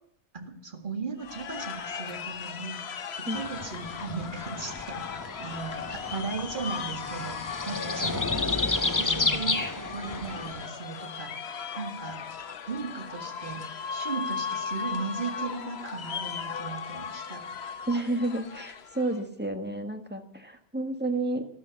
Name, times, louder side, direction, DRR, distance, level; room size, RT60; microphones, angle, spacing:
voice 1, 0.3-2.8 3.3-8.7 9.0-12.2 12.7-13.6 13.9-17.4, right 4 dB, 55° right, 4 dB, 2.1 m, -37 dB
sound 1, 1.2-19.2, left 6 dB, 85° left, 1.2 m, -37 dB
sound 2, 3.4-10.7, left 3 dB, 20° left, 0.7 m, -31 dB
voice 2, 17.9-21.4, right 2 dB, 10° right, 6 dB, 1.5 m, -30 dB
13.5 x 12.5 x 8.2 m, 0.73 s
omnidirectional pair, 1.0 m